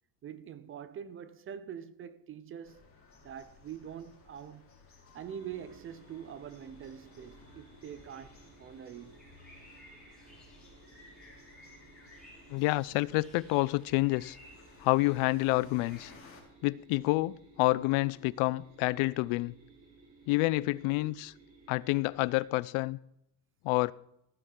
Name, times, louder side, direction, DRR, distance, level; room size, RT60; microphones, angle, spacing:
voice 1, 0.2-2.8 3.2-4.7 5.1-9.1, right 8 dB, 30° right, 0.3 m, -44 dB
sound 1, 2.6-16.4, left 4 dB, 25° left, 3.2 m, -58 dB
sound 2, 5.2-22.5, right 4 dB, 70° right, 5.9 m, -60 dB
sound 3, 7.9-16.2, left 1 dB, ahead, 3.9 m, -57 dB
voice 2, 12.5-14.4 14.8-16.1 16.6-19.5 20.3-21.3 21.7-23.0 23.6-23.9, left 21 dB, 85° left, 0.6 m, -28 dB
14.5 x 9.8 x 3.8 m
cardioid pair, 170°, 48 cm